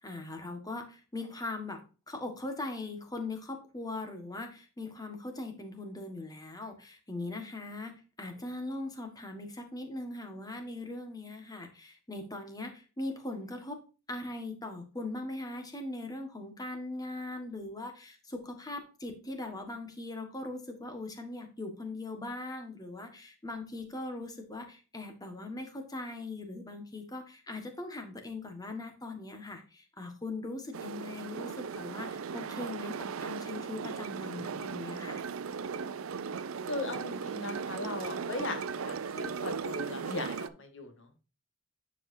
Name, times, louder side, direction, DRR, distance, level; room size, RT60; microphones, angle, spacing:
voice 1, 0.0-1.8 2.1-13.8 14.1-35.2, left 2 dB, 20° left, 5 dB, 1.5 m, -40 dB
sound 1, 30.7-40.5, right 6 dB, 90° right, 0.5 m, -37 dB
voice 2, 36.7-41.2, left 3 dB, 65° left, 6 dB, 1.7 m, -38 dB
9.9 x 4.9 x 2.7 m, 0.34 s
head